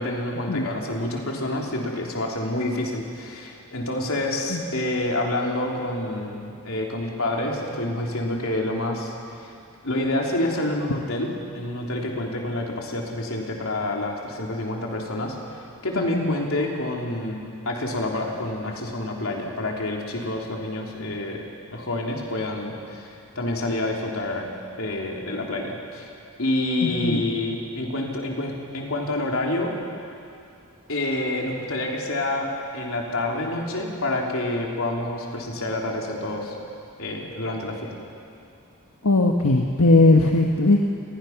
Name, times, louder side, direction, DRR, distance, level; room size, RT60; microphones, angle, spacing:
voice 1, 0.0-9.5 9.8-21.4 21.7-24.5 24.8-26.1 26.4-29.7 30.9-36.6 37.0-37.9, left 1 dB, 70° left, -1 dB, 3.5 m, -28 dB
voice 2, 26.8-27.2 39.0-40.8, left 2 dB, 85° left, 1 dB, 1.4 m, -18 dB
28.5 x 20.5 x 6.0 m, 2.5 s
head